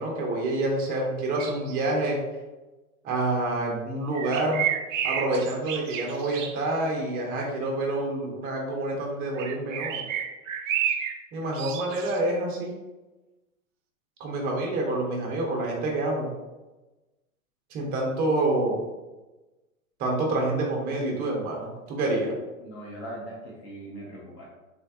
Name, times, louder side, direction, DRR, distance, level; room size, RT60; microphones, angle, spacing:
voice 1, 0.0-2.2 3.0-4.7 5.0-10.1 11.3-12.7 14.2-16.3 17.7-18.8 20.0-22.3, right 2 dB, 20° right, 0 dB, 0.7 m, -27 dB
sound 1, 1.4-1.9 4.1-6.6 9.4-11.2 11.5-12.2, right 9 dB, 60° right, 0.5 m, -31 dB
voice 2, 22.6-24.4, right 1 dB, 25° left, -4 dB, 0.4 m, -40 dB
3.4 x 3.1 x 2.4 m, 1.1 s
hypercardioid pair, 115°, 43 cm